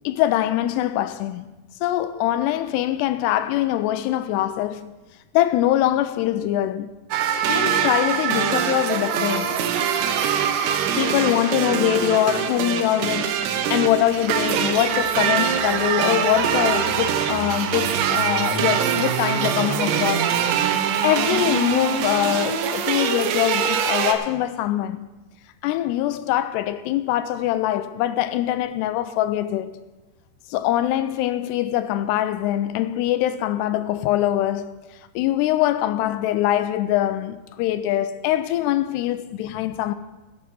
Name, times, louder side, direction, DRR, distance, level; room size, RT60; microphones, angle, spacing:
voice 1, 0.1-1.5 1.8-4.9 5.3-6.9 7.5-9.6 11.0-20.3 21.0-25.0 25.6-29.8 30.5-34.8 35.2-39.9, left 13 dB, 80° left, 2.6 m, -23 dB
sound 1, 7.1-24.1, right 8 dB, 85° right, 3.1 m, -23 dB
15.0 x 8.0 x 5.4 m
omnidirectional pair, 5.0 m